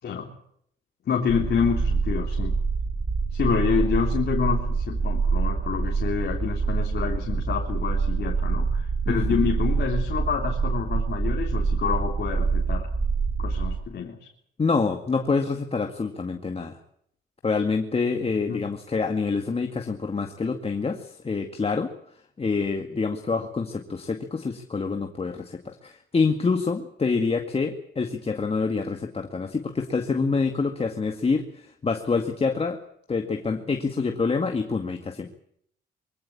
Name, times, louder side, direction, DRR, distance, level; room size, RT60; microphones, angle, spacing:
voice 1, 1.1-2.5 3.3-12.9 13.4-14.3 18.5-18.6, left 7 dB, 55° left, 1 dB, 3.5 m, -27 dB
sound 1, 1.3-13.8, right 5 dB, 20° right, 3.0 m, -26 dB
voice 2, 9.1-9.5 14.6-16.8 17.4-21.9 22.4-32.8 33.1-35.4, left 4 dB, 30° left, 5 dB, 2.1 m, -26 dB
23.5 x 16.0 x 8.8 m, 0.69 s
cardioid pair, 90°, 20 cm